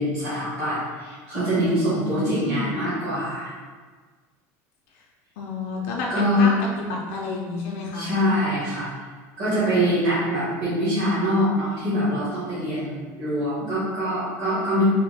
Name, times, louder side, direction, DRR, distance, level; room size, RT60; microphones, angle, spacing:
voice 1, 0.0-3.5 6.1-6.5 7.9-8.9 9.4-14.8, equal, 45° right, -12 dB, 1.2 m, -24 dB
voice 2, 1.9-2.8 5.4-8.1, left 3 dB, 65° left, -1 dB, 0.4 m, -30 dB
3.4 x 2.1 x 3.3 m, 1.5 s
cardioid pair, 180°, 8 cm